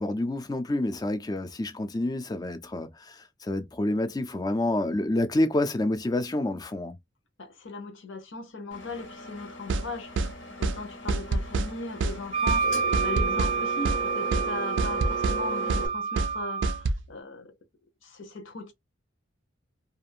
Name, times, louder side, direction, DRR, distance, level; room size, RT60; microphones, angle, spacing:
voice 1, 0.0-7.0, left 1 dB, 20° left, 0.4 m, -28 dB
voice 2, 7.4-10.1 10.6-17.5 18.0-18.7, left 3 dB, 70° left, 0.8 m, -38 dB
Engine, 8.7-15.9, right 2 dB, 90° left, 1.1 m, -37 dB
sound 1, 9.7-9.9 10.2-10.3 10.6-10.8 11.1-11.7 12.0-12.2 12.5-12.6 12.9-13.6 13.9-14.0 14.3-14.5 14.8-15.4 15.7-15.9 16.2-16.3 16.6-17.0, right 3 dB, 65° right, 0.4 m, -26 dB
Wind instrument woodwind instrument, 12.3-16.8, right 5 dB, 25° right, 0.6 m, -29 dB
2.5 x 2.5 x 2.6 m
head